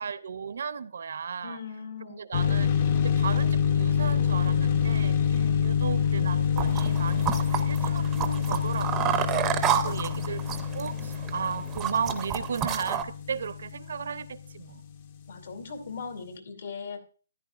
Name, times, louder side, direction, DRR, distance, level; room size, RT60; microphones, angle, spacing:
voice 1, 0.0-1.6 2.1-2.7 3.0-10.4 10.7-14.8, right 6 dB, 60° right, 0.6 m, -35 dB
voice 2, 1.4-2.2 5.3-5.7 9.3-10.3 15.3-17.0, left 5 dB, 65° left, 2.6 m, -40 dB
sound 1, 2.3-14.8, left 7 dB, 35° left, 0.7 m, -27 dB
sound 2, 6.6-13.0, right 9 dB, 15° right, 0.6 m, -30 dB
14.0 x 10.5 x 2.4 m
hypercardioid pair, 160°, 0 cm